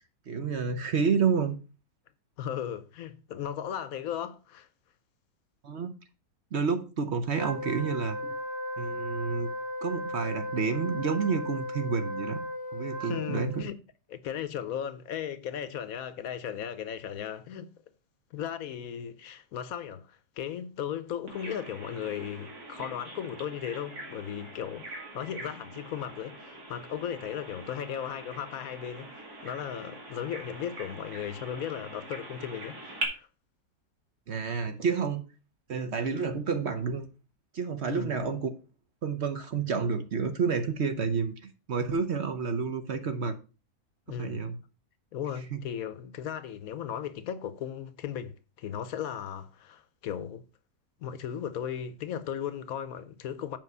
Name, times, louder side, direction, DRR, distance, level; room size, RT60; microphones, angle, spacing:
voice 1, 0.3-1.6 5.6-5.9 6.5-8.4 8.8-9.5 9.8-12.5 12.7-13.6 34.3-35.2 35.7-37.1 37.5-38.5 39.0-43.4 44.1-44.6 45.5-45.6, right 5 dB, 55° right, 0.9 m, -29 dB
voice 2, 2.4-4.7 13.0-13.8 14.1-17.7 18.3-33.3 37.9-38.2 44.1-44.5 45.1-50.4 51.0-53.6, left 9 dB, 70° left, 1.1 m, -36 dB
Wind instrument woodwind instrument, 7.3-13.7, left 1 dB, 15° right, 0.8 m, -36 dB
Bird vocalization bird call bird song, 21.3-33.0, right 1 dB, 75° right, 2.8 m, -43 dB
7.6 x 5.4 x 5.4 m
omnidirectional pair, 1.7 m